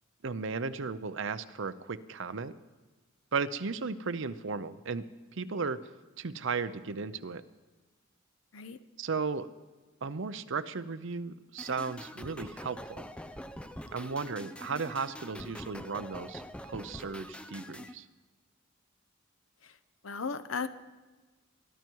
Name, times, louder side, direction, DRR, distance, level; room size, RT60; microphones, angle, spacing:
voice 1, 0.2-2.5 3.3-5.1 5.3-5.8 6.2-7.4 9.0-9.5 10.0-13.1 13.9-18.1, right 4 dB, 65° right, 13 dB, 0.7 m, -35 dB
sound 1, 11.6-17.9, equal, 5° left, 0.5 m, -44 dB
voice 2, 20.0-20.7, left 5 dB, 75° left, 12 dB, 0.8 m, -36 dB
22.5 x 12.0 x 4.7 m, 1.3 s
head